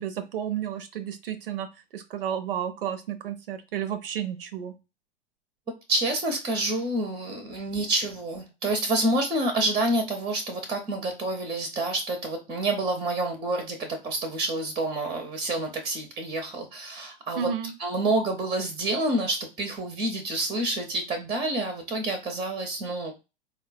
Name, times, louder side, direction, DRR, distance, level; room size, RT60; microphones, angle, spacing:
voice 1, 0.0-1.7 1.9-4.7 17.3-17.7, right 9 dB, 65° right, 11 dB, 0.6 m, -32 dB
voice 2, 5.9-17.5 17.8-23.2, right 2 dB, 15° right, 4 dB, 0.6 m, -28 dB
4.3 x 2.2 x 2.5 m, 0.27 s
figure-of-eight pair, 90°, 30 cm